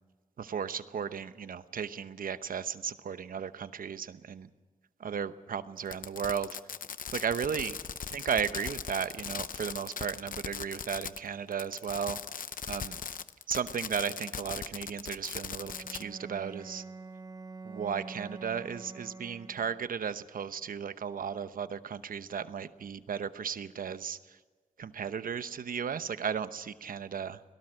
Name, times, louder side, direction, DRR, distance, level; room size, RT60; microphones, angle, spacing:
voice 1, 0.4-4.5 5.0-6.5 7.1-7.7 8.1-12.2 12.7-13.0 13.5-16.8 17.6-24.4 24.8-27.4, right 7 dB, 80° right, 12 dB, 0.9 m, -35 dB
Fireworks, 5.9-11.3 11.5-16.0, left 7 dB, 75° left, 0.7 m, -39 dB
Bowed string instrument, 15.5-20.0, right 3 dB, 25° right, 1.0 m, -46 dB
24.0 x 18.0 x 6.5 m, 1.4 s
cardioid pair, 60°, 14 cm